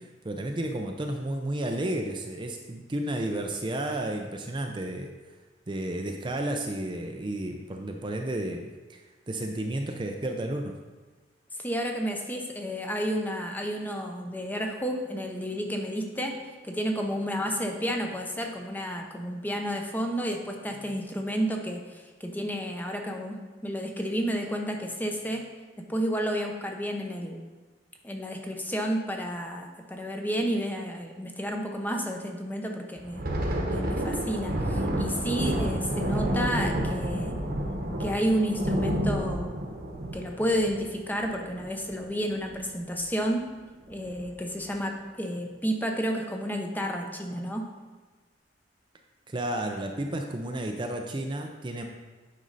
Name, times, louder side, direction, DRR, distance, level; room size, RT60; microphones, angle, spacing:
voice 1, 0.0-5.1 5.7-9.0 9.3-10.8 49.3-51.8, right 1 dB, 25° right, 3 dB, 0.5 m, -32 dB
voice 2, 11.6-16.4 16.6-25.4 25.9-27.4 28.0-33.2 33.7-37.3 38.0-39.5 40.1-43.4 43.9-47.6, equal, 10° left, 2 dB, 0.8 m, -31 dB
Thunder, 33.0-42.1 42.4-42.6 43.0-43.2 43.9-44.3, right 1 dB, 55° right, 1.1 m, -30 dB
9.3 x 5.4 x 4.0 m, 1.3 s
head